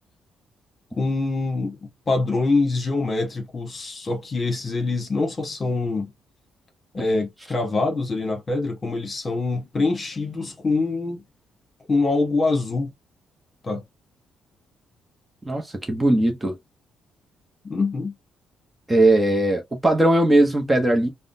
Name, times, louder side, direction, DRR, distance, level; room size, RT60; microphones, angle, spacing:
voice 1, 1.0-1.8 2.1-6.1 6.9-11.2 11.9-12.9 13.6-13.8 17.6-18.1, left 3 dB, 35° left, 1.2 m, -24 dB
voice 2, 15.5-16.5 18.9-21.1, right 1 dB, 15° right, 0.8 m, -19 dB
3.5 x 2.1 x 2.6 m
cardioid pair, 90°, 0 cm